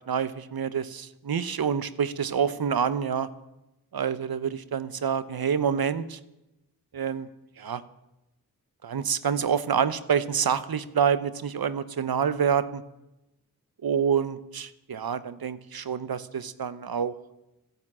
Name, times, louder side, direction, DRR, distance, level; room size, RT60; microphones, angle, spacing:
voice 1, 0.1-3.3 3.9-6.2 6.9-7.3 7.6-7.8 8.8-12.8 13.8-17.1, right 7 dB, 75° right, 15 dB, 0.9 m, -27 dB
13.5 x 11.0 x 8.7 m, 0.92 s
cardioid pair, 50°, 37 cm